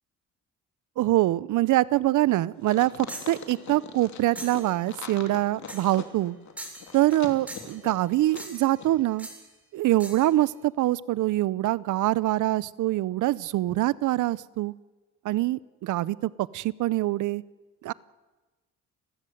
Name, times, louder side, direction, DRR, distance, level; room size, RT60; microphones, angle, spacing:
voice 1, 1.0-6.3 6.9-9.3 9.7-14.7 15.2-17.4 17.8-17.9, right 16 dB, 80° right, 20 dB, 0.7 m, -24 dB
sound 1, 2.6-8.5 8.8-8.9, left 8 dB, 70° left, 3.0 m, -41 dB
sound 2, 3.1-3.4 4.4-4.7 5.7-6.0 6.6-7.2 7.5-7.8 8.4-8.8 9.2-9.4 10.0-10.3, right 1 dB, 5° right, 7.8 m, -41 dB
29.0 x 15.0 x 7.9 m, 1.2 s
cardioid pair, 90°, 30 cm